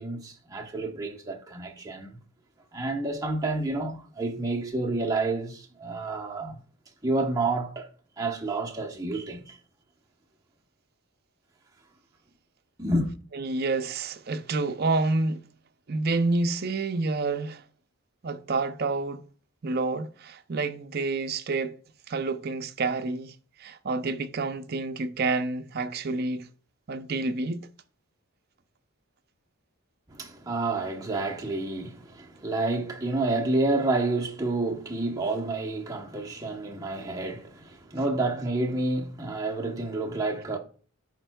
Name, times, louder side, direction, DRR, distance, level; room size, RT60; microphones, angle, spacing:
voice 1, 0.0-2.2 2.7-6.6 7.0-7.9 8.2-9.6 12.8-13.1 30.1-40.6, right 2 dB, 15° right, 0.9 m, -29 dB
voice 2, 13.3-15.4 15.9-17.6 18.2-19.2 19.6-21.8 22.1-26.5 26.9-27.7, right 3 dB, 45° right, 0.5 m, -28 dB
10.5 x 4.4 x 2.2 m
head